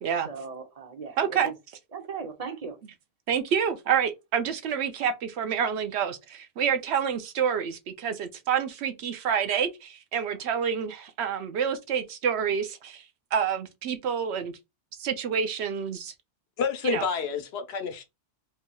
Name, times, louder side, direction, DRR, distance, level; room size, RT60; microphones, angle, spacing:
voice 1, 0.2-1.5 1.9-2.8, right 5 dB, 40° right, 0.7 m, -38 dB
voice 2, 1.2-1.5 3.3-13.0 13.3-14.5 15.0-16.1 16.8-17.0, right 7 dB, 75° right, 0.9 m, -28 dB
voice 3, 16.6-18.0, left 6 dB, 70° left, 1.0 m, -29 dB
4.4 x 2.8 x 2.2 m
omnidirectional pair, 1.2 m